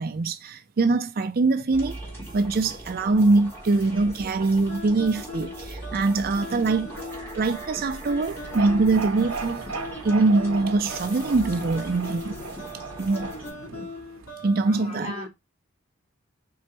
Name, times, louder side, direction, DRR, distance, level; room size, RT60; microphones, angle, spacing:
voice 1, 0.0-2.0 2.3-6.9 7.3-9.6 10.0-12.4 13.0-13.3 14.4-15.1, right 3 dB, 45° right, 0.4 m, -23 dB
sound 1, 1.7-13.5, right 1 dB, 10° left, 1.9 m, -40 dB
sound 2, 4.7-14.8, left 1 dB, 90° left, 2.5 m, -40 dB
sound 3, 8.3-14.3, right 4 dB, 80° right, 0.8 m, -37 dB
voice 2, 14.6-15.3, left 2 dB, 30° left, 1.6 m, -36 dB
4.3 x 3.9 x 3.1 m
head